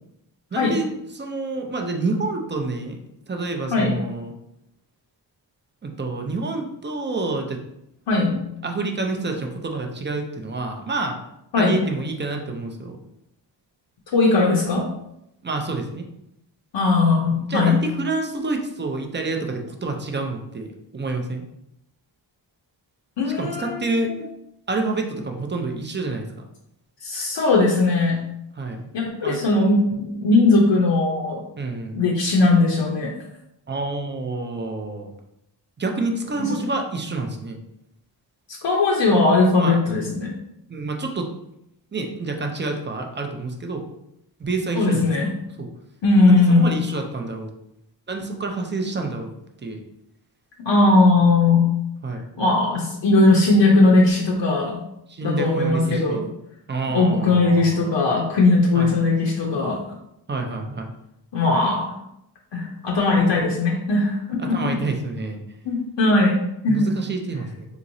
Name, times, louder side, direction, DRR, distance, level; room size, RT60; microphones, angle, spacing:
voice 1, 0.5-3.0 3.3-4.4 5.8-7.6 8.1-11.2 11.6-13.0 15.4-16.1 17.4-21.4 23.4-24.1 24.7-26.4 28.6-28.9 29.2-29.4 31.6-32.0 33.7-35.1 35.8-37.6 39.6-39.8 40.7-41.3 41.9-43.8 44.4-45.1 45.6-45.7 46.3-47.5 48.1-49.3 49.6-49.8 52.0-52.2 55.1-56.2 56.7-57.8 58.7-58.9 60.3-60.9 64.4-65.4 66.7-67.7, right 3 dB, 25° right, 3 dB, 0.4 m, -28 dB
voice 2, 8.1-8.4 11.5-11.8 14.1-14.8 16.7-17.8 23.2-24.2 27.0-28.2 28.9-31.4 31.9-33.1 36.4-36.5 38.5-40.3 44.7-45.3 46.0-46.7 50.7-51.7 52.4-54.8 55.2-56.2 56.9-59.8 61.3-61.9 62.5-64.6 65.6-66.9, left 3 dB, 70° left, -2 dB, 0.7 m, -19 dB
3.7 x 3.0 x 2.6 m, 0.81 s
wide cardioid pair, 130°, 45 cm